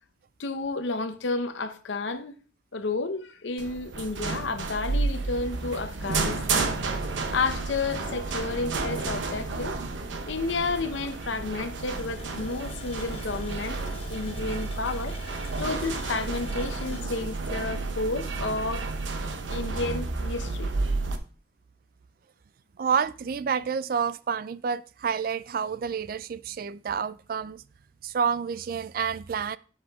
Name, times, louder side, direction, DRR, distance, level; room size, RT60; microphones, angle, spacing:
voice 1, 0.4-2.3 2.7-6.7 7.3-9.8 10.2-13.8 14.1-15.2 15.6-18.9 19.5-20.7, left 3 dB, 75° left, 0.7 m, -31 dB
sound 1, 3.6-21.2, right 3 dB, 80° right, 0.9 m, -31 dB
Water tap faucet, 11.9-18.4 18.7-18.8 19.3-19.4, left 4 dB, 30° left, 1.0 m, -48 dB
voice 2, 22.8-27.6 28.0-29.6, right 6 dB, 50° right, 0.3 m, -29 dB
7.6 x 7.3 x 3.5 m
head